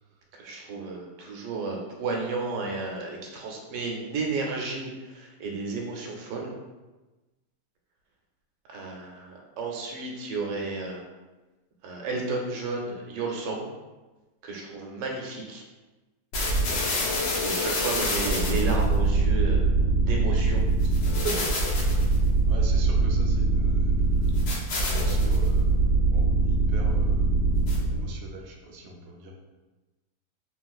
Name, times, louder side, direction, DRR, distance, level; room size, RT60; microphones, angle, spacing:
voice 1, 0.3-6.5 8.7-11.0 11.8-13.7 14.4-15.6 17.3-19.7 20.0-20.7 21.2-21.5, right 3 dB, 90° right, 0 dB, 1.3 m, -32 dB
sound 1, 16.3-28.1, right 2 dB, 80° left, 1.4 m, -23 dB
voice 2, 22.5-23.9 24.7-27.3 27.9-29.3, right 2 dB, 70° right, 0 dB, 1.0 m, -43 dB
3.1 x 3.0 x 2.3 m, 1.1 s
omnidirectional pair, 1.8 m